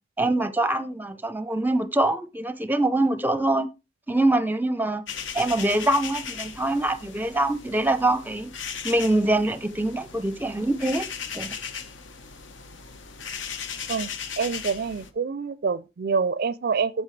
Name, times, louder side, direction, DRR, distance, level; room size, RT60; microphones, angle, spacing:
voice 1, 0.2-3.7 4.1-5.0 5.3-8.5 8.8-11.1 11.3-11.5, right 1 dB, 10° right, 0.6 m, -24 dB
sound 1, 5.1-15.1, left 6 dB, 70° left, 1.1 m, -37 dB
voice 2, 14.4-17.0, right 5 dB, 50° right, 0.4 m, -26 dB
14.0 x 5.6 x 3.2 m
head